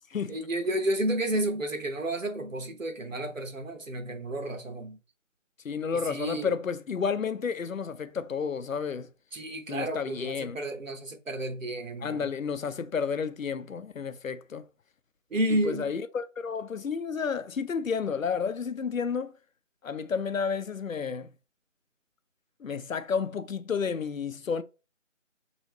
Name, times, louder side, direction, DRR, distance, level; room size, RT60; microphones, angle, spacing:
voice 1, 0.3-5.0 6.0-6.5 9.3-12.3 15.3-15.9, right 1 dB, 80° right, 1.1 m, -31 dB
voice 2, 5.6-9.1 9.7-10.6 12.0-14.7 15.5-19.3 19.8-21.3 22.6-24.6, left 6 dB, 90° left, 0.6 m, -31 dB
4.0 x 3.1 x 3.1 m
figure-of-eight pair, 175°, 39 cm